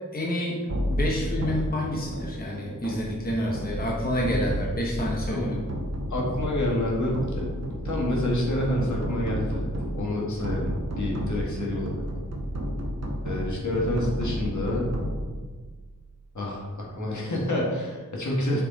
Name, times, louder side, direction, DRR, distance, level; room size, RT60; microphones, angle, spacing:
voice 1, 0.1-0.6 0.9-5.6, left 1 dB, 30° left, -3 dB, 1.0 m, -28 dB
sound 1, 0.7-16.0, equal, 50° right, 1.1 m, -31 dB
voice 2, 5.3-5.6 6.1-7.5 7.8-12.0 13.2-14.9 16.3-18.6, left 1 dB, 60° left, -3 dB, 1.7 m, -28 dB
6.5 x 5.0 x 4.0 m, 1.4 s
wide cardioid pair, 110°, 33 cm